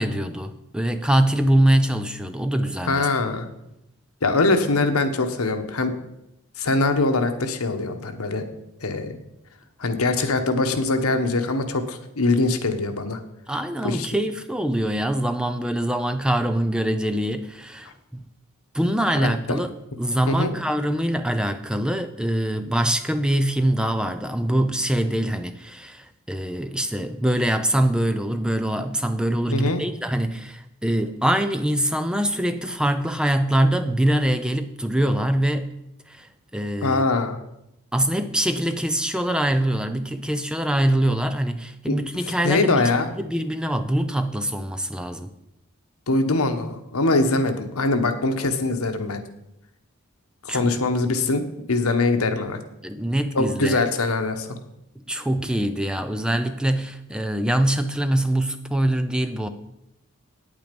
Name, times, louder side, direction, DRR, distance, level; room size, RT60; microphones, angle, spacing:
voice 1, 0.0-3.1 13.5-18.2 18.7-19.7 20.0-35.8 36.1-37.0 37.9-42.8 43.2-45.3 50.5-50.7 52.8-53.8 55.0-59.5, right 1 dB, 5° right, 9 dB, 0.4 m, -24 dB
voice 2, 2.8-3.5 4.2-6.0 6.6-8.4 8.8-9.2 9.8-13.2 13.8-14.1 19.2-19.6 20.3-20.5 29.5-29.8 36.8-37.4 41.9-42.0 42.4-43.1 46.1-49.2 50.4-51.4 51.7-52.6 53.3-54.6, left 3 dB, 85° left, 7 dB, 1.1 m, -22 dB
9.1 x 8.6 x 5.3 m, 0.85 s
head